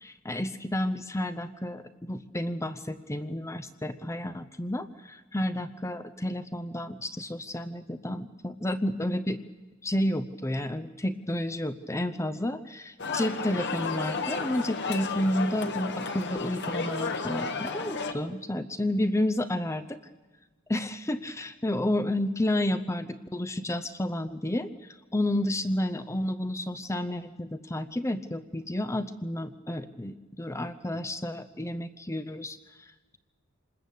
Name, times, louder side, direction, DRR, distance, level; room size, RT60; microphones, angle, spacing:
voice 1, 0.0-9.4 9.8-20.0 20.7-33.2, left 1 dB, 15° left, 12 dB, 0.7 m, -31 dB
sound 1, 13.0-18.1, left 4 dB, 55° left, 1.9 m, -32 dB
27.5 x 20.5 x 8.3 m, 1.2 s
head